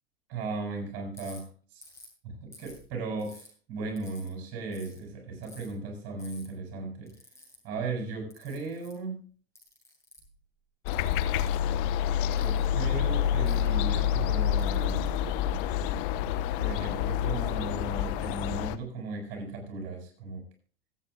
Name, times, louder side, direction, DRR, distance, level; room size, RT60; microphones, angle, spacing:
voice 1, 0.3-1.9 2.2-7.1 7.6-9.3 12.2-15.1 16.6-20.4, right 3 dB, 55° right, 2 dB, 6.9 m, -37 dB
Ratchet pawl, 1.2-1.4 1.8-2.1 2.5-3.5 4.0-4.3 4.7-5.0 5.4-5.7 6.2-6.5 7.1-7.6 8.3-9.0 9.6-10.3 10.9-11.6 12.3-12.7 13.5-13.7 14.4-15.9, left 2 dB, 10° left, 7.1 m, -52 dB
sound 1, 10.9-18.8, left 10 dB, 60° left, 1.0 m, -28 dB
25.0 x 9.2 x 2.3 m, 0.40 s
hypercardioid pair, 100°, 30 cm